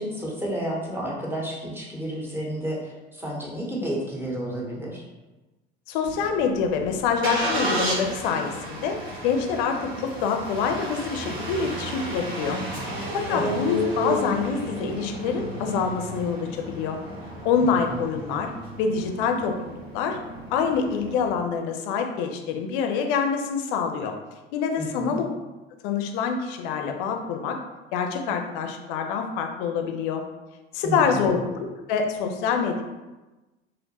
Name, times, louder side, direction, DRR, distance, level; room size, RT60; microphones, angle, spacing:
voice 1, 0.0-5.0 13.3-13.5 17.6-18.0 24.7-25.2 30.8-31.4, right 1 dB, 5° right, -4 dB, 0.7 m, -31 dB
voice 2, 5.9-9.0 9.2-12.6 12.9-17.0 17.4-18.5 18.8-20.2 20.5-24.1 24.5-25.3 25.8-27.6 27.9-30.2 30.7-32.8, left 6 dB, 60° left, 5 dB, 0.4 m, -26 dB
Engine starting, 6.0-21.3, equal, 85° right, 0.9 m, -33 dB
2.6 x 2.1 x 2.7 m, 1.1 s
figure-of-eight pair, 65°, 31 cm